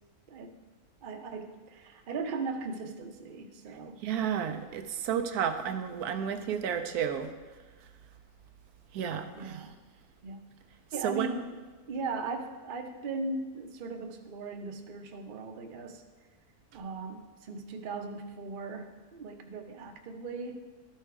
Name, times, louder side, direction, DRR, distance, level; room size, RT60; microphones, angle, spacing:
voice 1, 1.0-4.0 9.4-9.7 10.2-10.4 10.9-11.5 11.9-16.0 16.7-20.5, right 4 dB, 45° right, 4 dB, 0.7 m, -38 dB
voice 2, 4.0-7.3 8.9-9.6 11.0-11.3, right 8 dB, 85° right, 7 dB, 1.1 m, -32 dB
12.0 x 4.5 x 4.7 m, 1.4 s
omnidirectional pair, 1.6 m